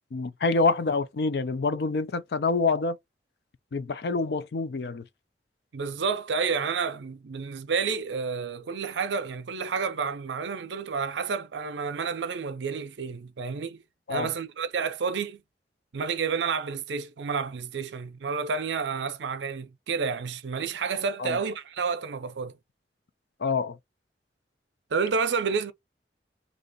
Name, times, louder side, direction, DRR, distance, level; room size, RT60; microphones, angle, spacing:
voice 1, 0.1-3.0 3.7-5.0 14.1-14.3 21.2-21.4 23.4-23.8, left 3 dB, 60° left, 0.4 m, -26 dB
voice 2, 5.7-13.8 14.1-15.4 15.9-22.5 24.9-25.7, right 5 dB, 85° right, 0.5 m, -30 dB
2.8 x 2.5 x 3.9 m
head